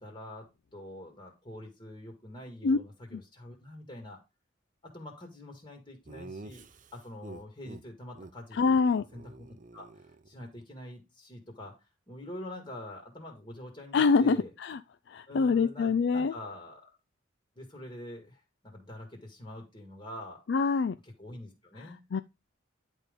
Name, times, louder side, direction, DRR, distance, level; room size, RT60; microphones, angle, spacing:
voice 1, 0.0-4.2 4.8-6.6 6.9-9.2 9.7-11.8 12.1-14.5 15.3-16.9 17.6-20.4 21.0-22.0, left 1 dB, 25° left, 1.9 m, -45 dB
Laughter, 6.1-7.8 8.1-8.3 8.6-8.8 9.1-10.6, right 2 dB, 40° right, 0.7 m, -48 dB
voice 2, 8.5-9.0 13.9-14.8 15.1-16.3 20.5-21.0 22.1-22.2, left 4 dB, 60° left, 0.4 m, -25 dB
10.5 x 3.6 x 5.1 m
head